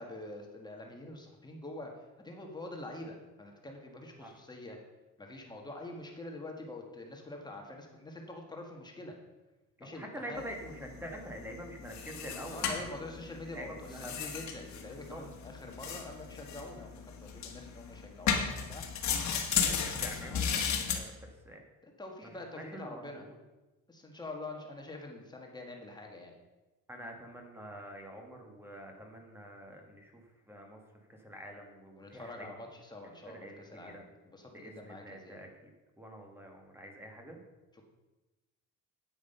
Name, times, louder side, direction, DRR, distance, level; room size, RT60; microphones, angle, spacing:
voice 1, 0.0-4.8 5.2-9.1 9.8-10.4 12.5-18.8 19.2-20.2 21.8-23.2 23.9-26.3 32.0-35.4, left 2 dB, 10° left, 1 dB, 1.5 m, -46 dB
voice 2, 9.8-12.9 13.5-14.1 15.1-15.2 19.5-21.6 22.2-23.4 26.9-30.8 31.1-32.5 33.2-34.0 34.5-35.7 36.0-37.4, right 1 dB, 5° right, 2 dB, 1.6 m, -46 dB
sound 1, 10.4-21.0, left 7 dB, 55° left, 1.5 m, -35 dB
9.5 x 8.9 x 5.5 m, 1.1 s
cardioid pair, 160°, 33 cm